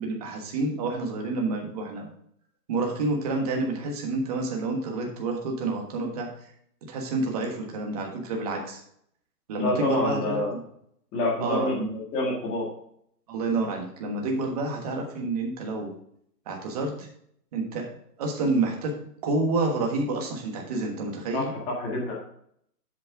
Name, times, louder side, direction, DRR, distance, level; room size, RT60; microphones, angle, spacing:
voice 1, 0.0-2.1 2.7-6.3 6.9-8.8 9.5-10.4 11.4-11.9 13.3-15.9 16.5-17.1 17.5-17.9 18.2-18.9 19.2-21.5, right 3 dB, 25° right, 1 dB, 1.3 m, -28 dB
voice 2, 9.6-10.5 11.1-12.7 21.3-22.1, left 2 dB, 15° left, -3 dB, 1.7 m, -27 dB
7.6 x 7.5 x 3.6 m, 0.69 s
hypercardioid pair, 165°, 49 cm